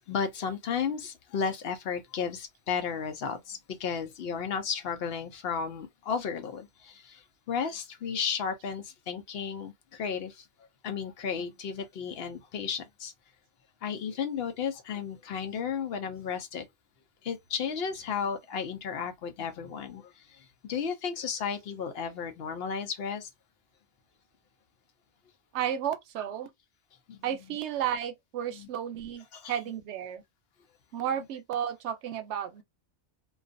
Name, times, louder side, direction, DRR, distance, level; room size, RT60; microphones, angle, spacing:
voice 1, 0.1-7.2 7.5-10.4 10.8-13.1 13.8-16.6 17.2-20.1 20.6-23.3 27.1-27.2 28.5-28.7 29.3-29.6, left 6 dB, 65° left, 0.7 m, -33 dB
voice 2, 25.5-26.5 27.2-30.2 30.9-32.6, right 9 dB, 80° right, 0.8 m, -33 dB
2.3 x 2.2 x 2.5 m
omnidirectional pair, 1.2 m